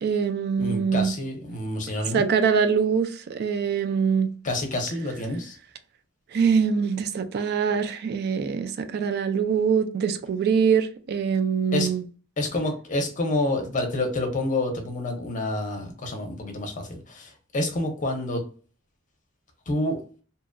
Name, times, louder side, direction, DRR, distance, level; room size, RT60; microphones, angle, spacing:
voice 1, 0.0-1.1 2.1-4.3 6.3-12.0, right 6 dB, 50° right, 0.3 m, -23 dB
voice 2, 0.6-2.2 4.4-5.6 11.7-11.9 12.4-18.4 19.7-20.0, left 2 dB, 40° left, 0.6 m, -28 dB
2.8 x 2.5 x 2.2 m
head